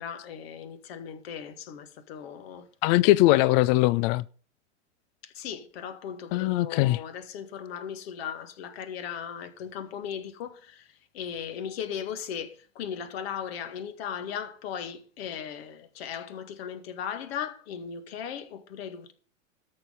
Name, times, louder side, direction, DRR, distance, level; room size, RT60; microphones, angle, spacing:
voice 1, 0.0-2.7 5.2-19.1, left 8 dB, 55° left, 1.9 m, -37 dB
voice 2, 2.8-4.2 6.3-7.0, left 17 dB, 35° left, 0.4 m, -21 dB
13.0 x 6.8 x 5.4 m
figure-of-eight pair, 95°, 36 cm